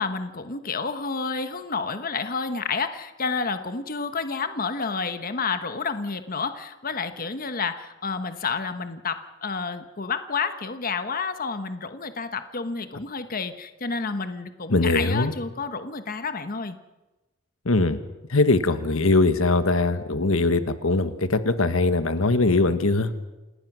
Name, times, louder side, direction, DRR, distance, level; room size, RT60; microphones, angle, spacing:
voice 1, 0.0-16.8, left 4 dB, 45° left, 9 dB, 1.2 m, -30 dB
voice 2, 14.7-15.3 17.6-18.0 18.3-23.1, left 2 dB, 85° left, 11 dB, 1.3 m, -21 dB
28.0 x 18.5 x 6.2 m, 1.1 s
head